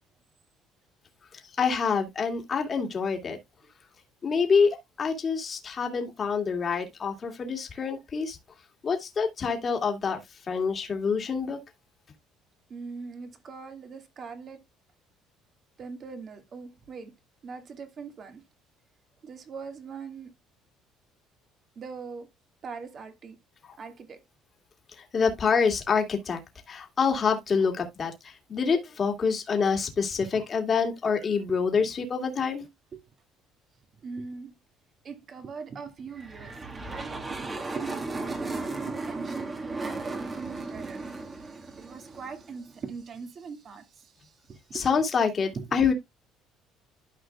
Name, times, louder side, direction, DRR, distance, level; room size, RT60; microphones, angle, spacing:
voice 1, 1.6-3.4 4.2-8.4 8.8-10.2 10.5-11.6 25.0-26.4 26.7-32.6 44.7-45.9, left 5 dB, 35° left, 2.2 m, -26 dB
voice 2, 12.7-14.6 15.8-17.1 17.4-18.4 19.2-20.3 21.8-22.3 22.6-23.4 23.8-24.2 30.3-30.4 32.9-33.0 34.0-34.5 35.0-44.9 45.5-45.8, right 5 dB, 45° right, 2.0 m, -41 dB
sound 1, 36.1-42.6, right 3 dB, 25° right, 1.6 m, -35 dB
12.5 x 5.0 x 2.3 m
cardioid pair, 105°, 0 cm